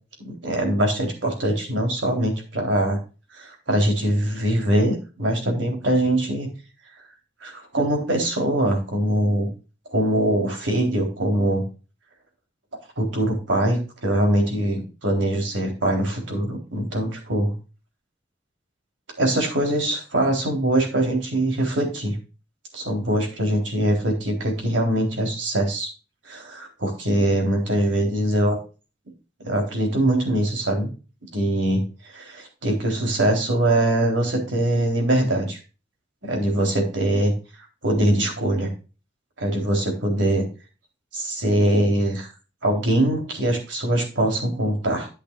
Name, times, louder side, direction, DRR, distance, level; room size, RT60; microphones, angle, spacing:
voice 1, 0.2-3.0 3.4-6.5 7.4-9.5 9.9-11.7 13.0-17.5 19.2-22.2 22.7-25.9 26.3-28.6 29.4-30.9 31.3-35.6 36.2-37.3 37.8-38.7 39.4-40.4 41.1-42.3 42.6-45.1, right 1 dB, 85° right, 2 dB, 3.7 m, -22 dB
10.5 x 8.3 x 2.5 m, 0.32 s
head